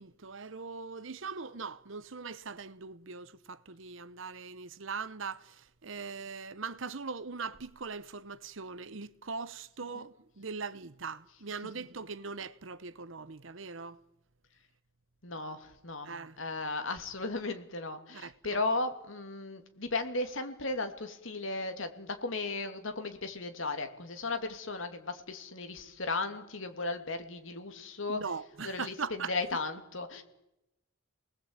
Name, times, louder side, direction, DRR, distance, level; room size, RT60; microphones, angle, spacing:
voice 1, 0.0-14.0 16.0-16.4 18.1-18.6 28.1-29.3, right 5 dB, 70° right, 1.0 m, -41 dB
voice 2, 15.2-16.1 16.4-28.2 28.6-30.2, left 3 dB, 70° left, 2.7 m, -36 dB
28.5 x 19.5 x 8.9 m
head